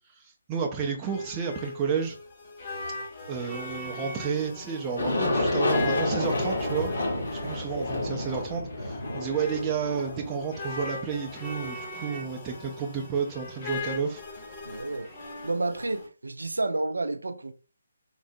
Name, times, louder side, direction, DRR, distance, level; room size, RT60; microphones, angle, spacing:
voice 1, 0.1-2.2 3.3-6.9 7.3-14.2, right 6 dB, 20° right, 0.4 m, -31 dB
sound 1, 0.8-16.1, left 2 dB, 35° left, 0.9 m, -39 dB
Aircraft, 5.0-11.7, left 2 dB, 70° left, 1.3 m, -29 dB
voice 2, 14.7-15.1 15.4-17.5, right 2 dB, 85° right, 0.4 m, -30 dB
3.6 x 2.0 x 2.6 m
figure-of-eight pair, 150°, 0 cm